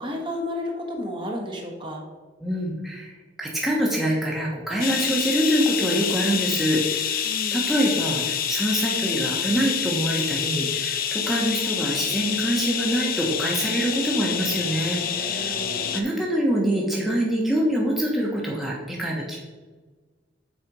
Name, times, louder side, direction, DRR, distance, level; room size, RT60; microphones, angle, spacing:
voice 1, 0.0-2.0 7.2-7.7 15.3-16.0, left 1 dB, 25° right, 0 dB, 1.2 m, -32 dB
voice 2, 2.4-3.1 3.4-7.2 7.5-15.6 15.9-19.4, right 1 dB, ahead, -4 dB, 1.1 m, -25 dB
sound 1, 4.8-16.0, left 8 dB, 50° left, 0.6 m, -27 dB
7.3 x 4.3 x 5.3 m, 1.4 s
head